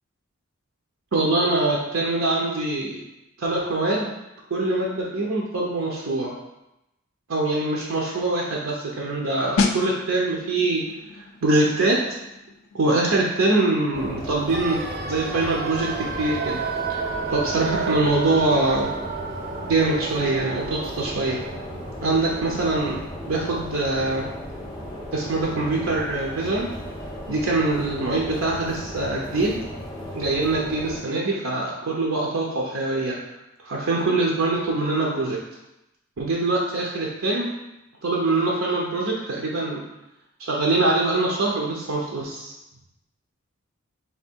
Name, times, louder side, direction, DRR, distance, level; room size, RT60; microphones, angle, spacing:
voice 1, 1.1-3.0 3.4-4.1 4.5-6.3 7.3-10.8 11.1-12.2 12.7-14.8 15.1-16.6 16.9-17.0 17.3-18.9 19.7-21.4 22.0-23.0 23.3-24.3 25.1-26.7 27.3-29.6 30.1-33.2 33.6-35.4 36.2-37.5 38.0-39.8 40.4-42.5, right 2 dB, 80° right, -2 dB, 0.6 m, -23 dB
sound 1, 9.6-20.1 20.3-20.6, left 4 dB, 85° left, 0.4 m, -34 dB
sound 2, 13.9-31.0, equal, 20° left, 0.6 m, -36 dB
sound 3, 14.5-24.4 24.7-24.8, right 5 dB, 45° right, 0.3 m, -32 dB
3.4 x 2.7 x 4.4 m, 0.91 s
head